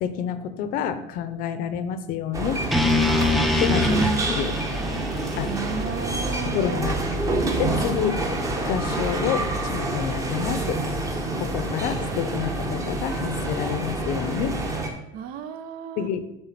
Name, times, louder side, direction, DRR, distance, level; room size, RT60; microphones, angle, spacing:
voice 1, 0.0-2.6 3.6-4.6 5.4-5.5 6.5-7.0 7.6-8.2 8.7-10.8 11.4-14.6 16.0-16.2, left 8 dB, 55° left, 11 dB, 0.7 m, -28 dB
sound 1, 2.3-14.9, right 2 dB, 20° right, 0.9 m, -27 dB
sound 2, 2.7-6.8, left 1 dB, ahead, 0.5 m, -24 dB
voice 2, 5.5-6.9 15.1-16.1, right 8 dB, 60° right, 11 dB, 0.7 m, -34 dB
7.8 x 3.9 x 5.9 m, 0.90 s
cardioid pair, 170°, 17 cm